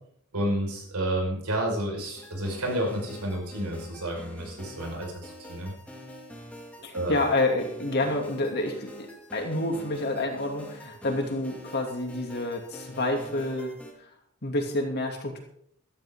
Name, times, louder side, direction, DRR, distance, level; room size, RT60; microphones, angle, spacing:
voice 1, 0.3-5.7 6.9-7.2, right 1 dB, 90° right, 0 dB, 5.4 m, -30 dB
sound 1, 2.2-13.9, equal, 5° left, 1.8 m, -46 dB
voice 2, 6.8-9.1 9.3-13.7 14.0-14.1 14.4-15.4, left 2 dB, 50° left, 2 dB, 2.7 m, -28 dB
15.0 x 13.5 x 3.8 m, 0.68 s
head